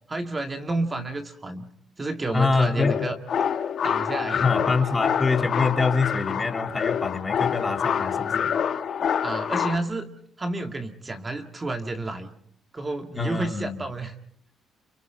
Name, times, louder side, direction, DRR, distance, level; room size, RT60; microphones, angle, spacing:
voice 1, 0.1-1.7 2.0-3.2 3.8-4.5 9.2-10.1 10.4-12.3 12.7-14.2, right 2 dB, 20° right, 5 dB, 1.9 m, -30 dB
voice 2, 2.3-2.9 4.4-8.5 13.1-13.8, left 4 dB, 20° left, 4 dB, 2.9 m, -25 dB
sound 1, 2.8-9.8, left 8 dB, 50° left, 1.5 m, -26 dB
30.0 x 28.5 x 3.8 m, 0.65 s
cardioid pair, 120°, 0 cm